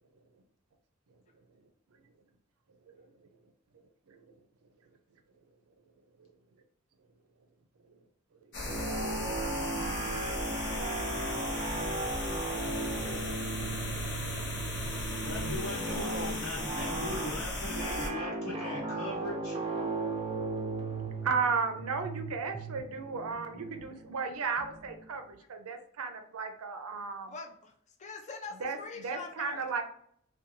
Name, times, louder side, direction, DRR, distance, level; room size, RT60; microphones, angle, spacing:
sound 1, 8.5-18.1, left 1 dB, 55° left, 0.8 m, -36 dB
sound 2, 8.7-25.2, right 3 dB, 25° right, 0.5 m, -37 dB
voice 1, 15.2-19.6, left 1 dB, 80° left, -2 dB, 1.1 m, -39 dB
voice 2, 21.2-27.3 28.6-28.8 29.0-29.8, right 5 dB, 80° right, 7 dB, 0.5 m, -34 dB
voice 3, 26.9-27.7 28.0-29.8, left 4 dB, 35° left, 3 dB, 0.5 m, -44 dB
2.6 x 2.3 x 2.8 m, 0.66 s
head